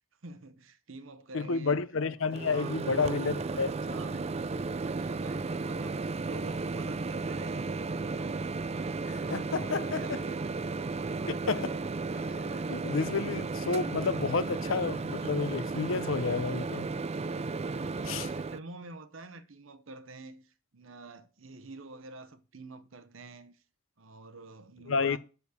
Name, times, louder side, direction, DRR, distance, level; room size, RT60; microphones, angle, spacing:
voice 1, 0.2-1.8 2.2-7.9 9.6-10.6 17.6-23.6 24.0-25.2, right 3 dB, 80° right, 0.9 m, -48 dB
voice 2, 1.3-3.7 9.1-10.2 11.3-11.7 12.2-16.9 18.1-18.3 24.9-25.2, left 4 dB, 80° left, 0.7 m, -31 dB
Microwave oven, 2.3-18.6, right 3 dB, 35° right, 0.4 m, -34 dB
7.0 x 6.5 x 7.0 m
head